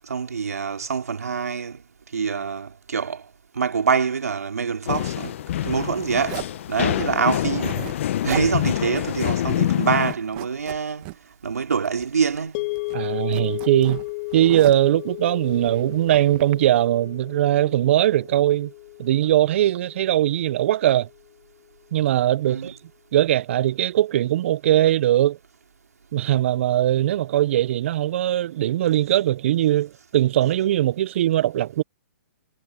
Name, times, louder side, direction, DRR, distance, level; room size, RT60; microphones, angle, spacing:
voice 1, 0.0-1.8 2.1-3.3 3.5-5.3 5.6-7.8 8.2-11.1 11.4-12.7 22.4-22.7, right 6 dB, 90° right, 3.5 m, -25 dB
sound 1, 4.9-10.1, left 12 dB, 55° left, 0.9 m, -25 dB
Zipper (clothing), 6.2-6.6 7.4-8.5 8.9-9.0 9.3-9.7 10.0-11.2 11.9-12.5 12.7-14.9 15.5-16.5, right 24 dB, 35° right, 2.0 m, -37 dB
sound 2, 12.5-20.8, left 24 dB, 40° left, 1.7 m, -34 dB
voice 2, 12.9-14.0 14.3-18.7 19.0-21.1 21.9-22.8 23.1-25.4 26.1-31.8, right 13 dB, 50° right, 0.6 m, -20 dB
hypercardioid pair, 140°, 8 cm